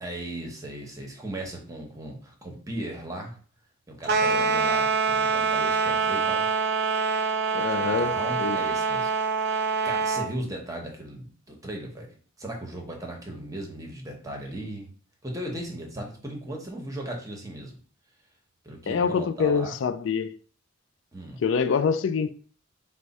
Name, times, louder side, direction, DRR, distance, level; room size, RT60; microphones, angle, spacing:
voice 1, 0.0-3.4 3.9-6.5 7.8-9.1 9.8-12.1 12.4-14.9 15.2-17.8 18.6-19.8 21.1-21.4, right 1 dB, 15° right, 0.9 m, -37 dB
sound 1, 4.0-10.3, right 5 dB, 55° right, 0.4 m, -25 dB
voice 2, 7.5-8.6 18.9-20.4 21.4-22.3, left 6 dB, 70° left, 0.4 m, -25 dB
4.7 x 2.1 x 4.1 m
head